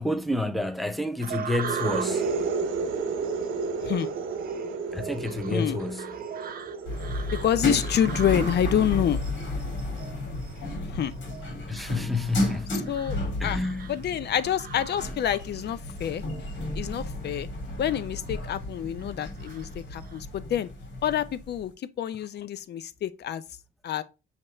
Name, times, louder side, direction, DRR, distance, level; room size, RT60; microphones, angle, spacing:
voice 1, 0.0-2.2 4.9-6.1 11.7-12.9 13.4-13.9, left 2 dB, ahead, 0.6 m, -29 dB
sound 1, 1.2-15.5 16.0-16.6 17.1-17.3 17.8-18.5 19.0-20.2, right 7 dB, 45° right, 0.7 m, -42 dB
sound 2, 1.5-9.0, right 4 dB, 85° right, 0.9 m, -32 dB
sound 3, 6.9-21.7, left 1 dB, 75° left, 2.7 m, -33 dB
voice 2, 7.3-9.2 10.8-11.1 12.7-13.6 13.9-16.2 16.7-17.5 17.8-20.7 21.0-21.7 22.0-23.4 23.8-24.0, left 10 dB, 55° left, 0.5 m, -27 dB
5.8 x 2.9 x 3.1 m
cardioid pair, 90°, 20 cm